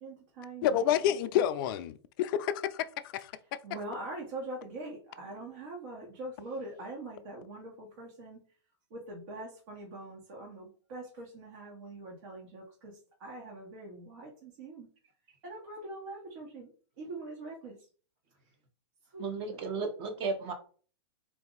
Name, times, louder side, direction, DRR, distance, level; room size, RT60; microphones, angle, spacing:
voice 1, 0.0-1.2 3.6-8.4 8.9-14.9 15.4-16.7 17.0-17.7 19.1-19.2 19.5-19.6, right 2 dB, 60° right, 1.4 m, -43 dB
voice 2, 0.6-3.3, left 10 dB, 50° left, 0.4 m, -29 dB
voice 3, 19.2-20.5, right 4 dB, 35° right, 1.1 m, -34 dB
3.8 x 2.6 x 3.9 m
hypercardioid pair, 135°, 15 cm